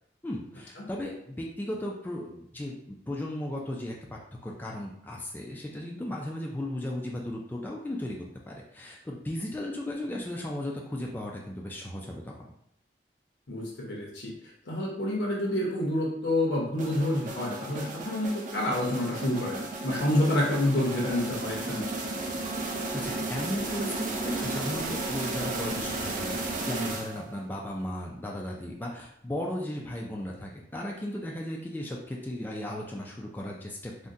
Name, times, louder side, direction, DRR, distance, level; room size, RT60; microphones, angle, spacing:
voice 1, 0.2-8.2 8.5-12.5 22.9-33.9, left 1 dB, 10° left, -2 dB, 0.3 m, -36 dB
voice 2, 13.5-14.3 14.7-21.9, left 1 dB, 80° left, -2 dB, 0.7 m, -28 dB
sound 1, 16.8-27.5, right 2 dB, 45° right, 0.5 m, -34 dB
3.6 x 2.2 x 2.6 m, 0.72 s
head